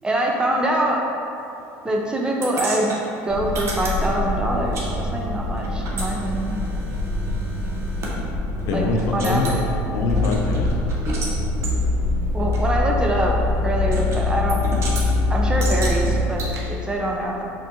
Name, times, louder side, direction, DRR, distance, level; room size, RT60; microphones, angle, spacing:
voice 1, 0.0-1.0 1.8-3.0 3.2-6.6 8.7-8.9 9.1-9.6 12.3-13.3 13.6-14.6 15.3-17.4, right 1 dB, 15° right, -1 dB, 0.5 m, -24 dB
sound 1, 2.4-4.9 5.1-8.1 8.6-8.7 9.0-9.6 10.1-11.3 11.6-11.8 12.5-12.6 13.9-14.2 14.5-15.1 15.6-16.6, right 2 dB, 45° right, 0.7 m, -32 dB
sound 2, 3.3-16.2, left 2 dB, 90° left, 0.9 m, -24 dB
voice 2, 8.7-9.5 9.9-11.2, left 3 dB, 65° left, 1 dB, 0.5 m, -24 dB
4.2 x 2.6 x 2.9 m, 2.7 s
supercardioid pair, 100°, 6 cm